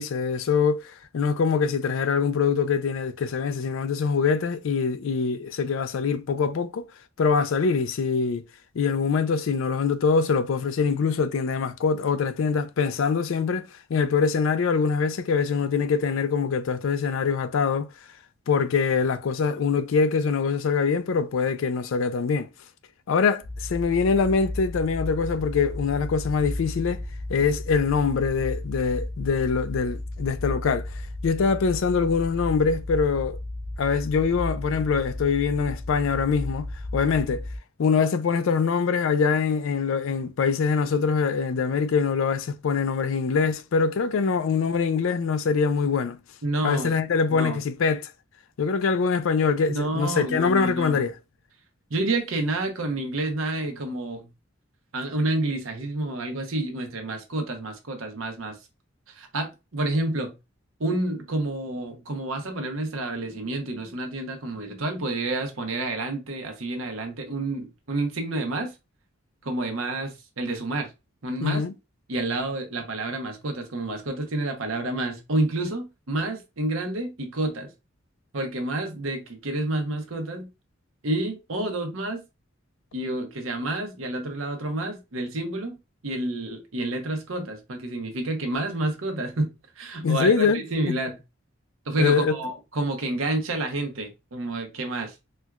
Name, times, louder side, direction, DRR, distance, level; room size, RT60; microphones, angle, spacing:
voice 1, 0.0-6.9 7.2-8.4 8.7-17.9 18.5-22.5 23.1-27.0 27.3-33.4 33.8-36.7 36.9-37.5 37.8-46.2 46.6-48.1 48.6-51.2 71.4-71.7 90.0-91.0 92.0-92.3, left 5 dB, 70° left, 0.4 m, -24 dB
sound 1, 23.4-37.6, left 1 dB, 10° left, 0.7 m, -34 dB
voice 2, 46.4-46.9 47.3-47.6 49.7-51.1 51.9-54.3 54.9-58.6 59.1-60.4 60.8-68.7 69.4-70.9 71.2-71.6 72.1-77.7 78.3-80.5 81.0-82.2 82.9-85.8 86.0-91.2 91.9-95.2, right 2 dB, 75° right, 0.9 m, -29 dB
4.3 x 2.3 x 2.3 m
head